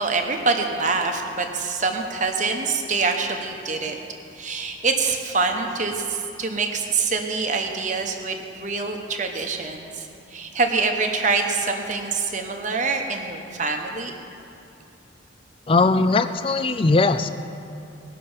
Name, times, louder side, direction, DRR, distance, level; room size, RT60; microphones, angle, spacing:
voice 1, 0.0-4.0 4.3-14.1, right 4 dB, 40° right, 4 dB, 1.0 m, -25 dB
voice 2, 15.7-17.3, left 3 dB, 25° left, 11 dB, 0.4 m, -19 dB
19.5 x 6.6 x 5.6 m, 2.8 s
head